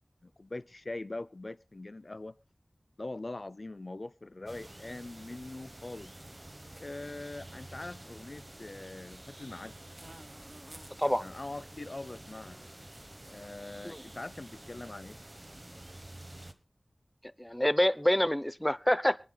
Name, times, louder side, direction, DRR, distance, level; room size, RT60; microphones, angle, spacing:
voice 1, 0.2-2.4 3.0-6.1 6.8-9.8 11.2-12.6 13.3-15.2, left 2 dB, 55° left, 0.6 m, -42 dB
sound 1, 4.5-16.5, right 1 dB, 35° right, 1.1 m, -49 dB
voice 2, 17.4-19.2, equal, 10° left, 0.7 m, -27 dB
24.0 x 11.0 x 2.3 m
wide cardioid pair, 40°, 0 cm